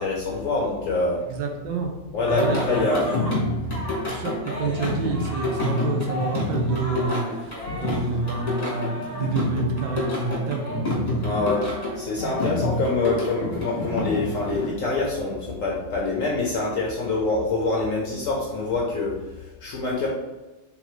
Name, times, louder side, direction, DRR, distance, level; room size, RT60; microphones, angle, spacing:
voice 1, 0.0-1.2 2.1-3.0 11.2-11.6 11.9-20.1, left 3 dB, 65° left, -3 dB, 0.8 m, -25 dB
voice 2, 1.3-1.9 2.4-3.0 4.1-11.2, right 4 dB, 80° right, 2 dB, 1.4 m, -28 dB
Singing, 2.3-14.7, left 1 dB, 25° left, 1.1 m, -28 dB
3.8 x 3.5 x 3.1 m, 1.1 s
omnidirectional pair, 2.0 m